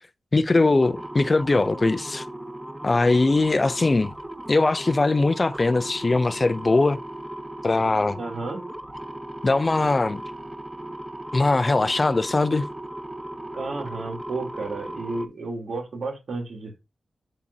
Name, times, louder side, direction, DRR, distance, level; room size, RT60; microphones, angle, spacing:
voice 1, 0.3-2.2 2.8-4.1 4.5-7.0 7.6-8.2 9.4-10.2 11.3-12.7, left 3 dB, 35° left, 0.5 m, -21 dB
sound 1, 0.8-15.3, right 1 dB, 10° right, 0.8 m, -37 dB
voice 2, 8.2-8.6 13.5-16.8, right 3 dB, 70° right, 3.3 m, -32 dB
8.6 x 6.8 x 2.8 m
cardioid pair, 70°, 0 cm